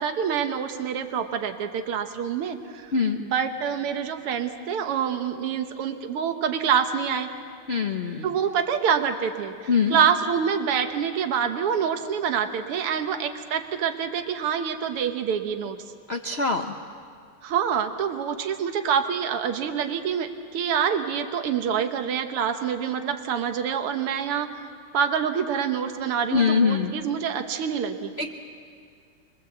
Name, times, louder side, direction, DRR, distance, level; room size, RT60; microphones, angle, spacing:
voice 1, 0.0-2.9 3.2-7.3 8.2-15.8 17.4-24.6 24.9-28.1, right 7 dB, 90° right, 7 dB, 2.0 m, -26 dB
voice 2, 7.7-8.3 9.7-10.0 16.1-16.7 26.3-26.9 28.2-28.3, left 5 dB, 55° left, 4 dB, 0.7 m, -23 dB
25.5 x 22.0 x 8.0 m, 2.3 s
omnidirectional pair, 2.4 m